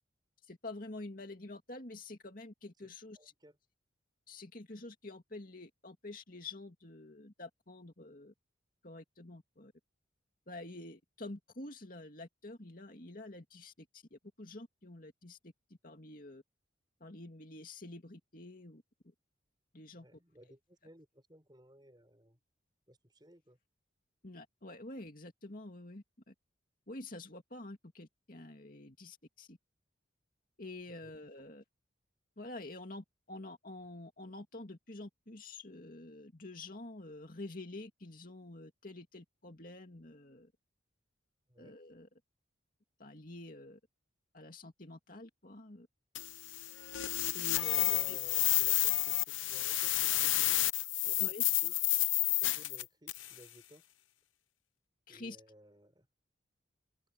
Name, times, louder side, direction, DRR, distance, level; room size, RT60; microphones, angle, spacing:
voice 1, 0.5-3.3 4.3-8.3 8.8-9.7 10.5-15.5 15.8-16.4 17.0-18.8 19.7-20.1 24.2-26.3 26.9-29.6 30.6-31.6 32.4-40.5 41.6-42.1 43.0-43.8 44.3-45.9 47.3-48.2 51.2-51.4 55.1-55.4, left 2 dB, 45° left, 2.4 m, -48 dB
voice 2, 3.2-3.6 19.9-22.4 22.9-23.6 31.0-31.4 41.5-41.7 47.7-50.6 51.0-51.8 52.3-53.8 55.1-56.1, equal, 20° right, 6.9 m, -58 dB
sound 1, 46.1-53.3, left 16 dB, 80° left, 0.9 m, -31 dB
head